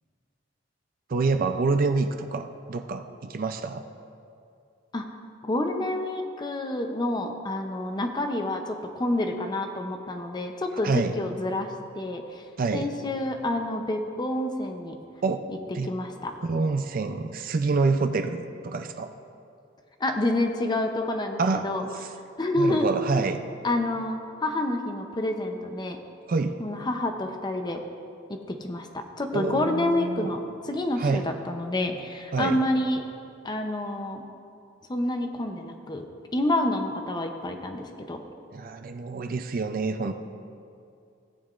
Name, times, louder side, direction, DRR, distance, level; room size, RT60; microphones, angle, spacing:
voice 1, 1.1-3.8 10.8-11.1 12.6-12.9 15.2-15.5 15.7-15.9 16.4-19.1 21.4-21.7 21.9-22.1 22.6-23.4 26.3-26.6 29.3-30.3 31.0-31.3 32.3-32.6 38.5-40.1, right 4 dB, 50° right, 7 dB, 0.4 m, -27 dB
voice 2, 5.5-12.4 12.7-15.0 15.9-16.3 20.0-21.8 22.4-22.9 23.6-26.0 26.6-27.8 28.3-33.0 33.4-34.2 34.9-36.1 36.3-38.2, left 1 dB, 25° left, 4 dB, 0.6 m, -28 dB
17.0 x 8.6 x 2.5 m, 2.5 s
head